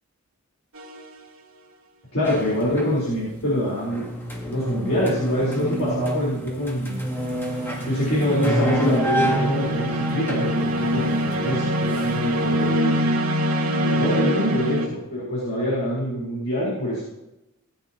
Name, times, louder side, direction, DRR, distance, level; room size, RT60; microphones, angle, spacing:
sound 1, 0.8-1.1 7.0-14.9, right 1 dB, 80° right, 1.7 m, -25 dB
voice 1, 2.1-4.1 4.4-7.0 7.9-13.0 13.8-17.0, equal, 70° left, -7 dB, 4.0 m, -25 dB
sound 2, 2.2-3.3 3.6-12.5, right 1 dB, 10° left, 1.4 m, -28 dB
17.0 x 9.2 x 2.9 m, 0.94 s
head